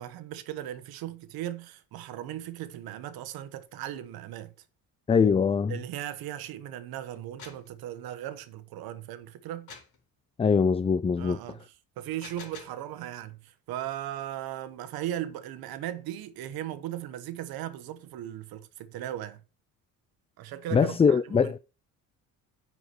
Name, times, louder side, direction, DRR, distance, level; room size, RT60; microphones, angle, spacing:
voice 1, 0.0-4.5 5.7-9.7 11.2-19.4 20.4-21.6, right 12 dB, 85° right, 1.3 m, -37 dB
voice 2, 5.1-5.7 10.4-11.4 20.7-21.6, left 6 dB, 15° left, 0.4 m, -22 dB
sound 1, 7.2-7.7 9.7-10.0 12.0-12.8, left 5 dB, 55° left, 4.2 m, -47 dB
9.8 x 4.9 x 5.9 m
cardioid pair, 110°, 35 cm